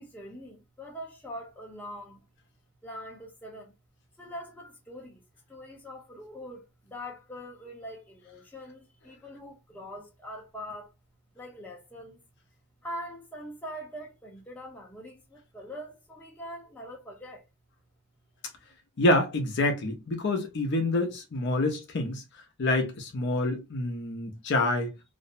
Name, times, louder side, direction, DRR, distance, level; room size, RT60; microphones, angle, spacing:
voice 1, 0.0-2.2 2.8-3.7 4.2-10.9 11.3-12.2 12.8-17.4, equal, 10° left, 0.7 m, -43 dB
voice 2, 19.0-22.2 22.6-24.9, left 2 dB, 55° left, 0.5 m, -27 dB
2.5 x 2.0 x 2.6 m
head